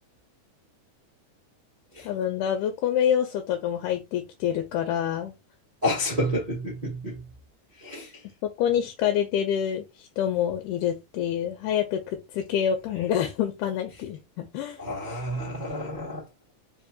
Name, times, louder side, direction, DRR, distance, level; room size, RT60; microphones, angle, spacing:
voice 1, 2.0-5.3 8.6-14.8, left 9 dB, 85° left, 2.1 m, -27 dB
voice 2, 5.8-7.2 7.8-8.1 14.8-16.2, left 1 dB, 65° right, 0.4 m, -29 dB
4.7 x 2.6 x 2.3 m
omnidirectional pair, 3.6 m